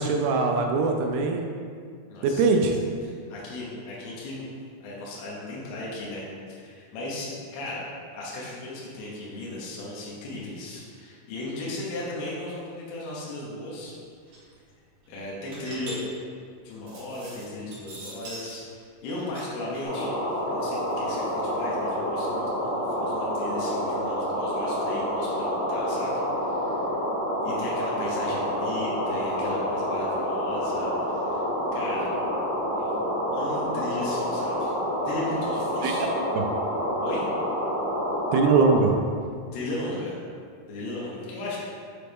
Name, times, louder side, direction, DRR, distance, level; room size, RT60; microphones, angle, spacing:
voice 1, 0.0-1.4 2.2-2.7 35.8-35.9 36.4-36.5 38.3-38.9, right 4 dB, 80° right, 3 dB, 2.4 m, -21 dB
voice 2, 2.1-2.4 3.0-4.5 4.8-7.8 8.1-13.9 15.1-16.0 16.6-20.1 20.5-26.8 27.4-31.4 31.7-32.1 32.8-33.0 33.3-34.7 35.0-36.1 37.0-37.2 39.5-40.2 40.7-41.6, left 2 dB, 75° left, -6 dB, 3.0 m, -36 dB
sound 1, 13.8-13.9 14.1-14.5 14.9-18.6 18.9-21.6, right 1 dB, 55° right, 2.8 m, -43 dB
sound 2, 19.8-38.7, equal, 60° left, 1.1 m, -28 dB
7.7 x 4.1 x 3.5 m, 2.2 s
omnidirectional pair, 4.7 m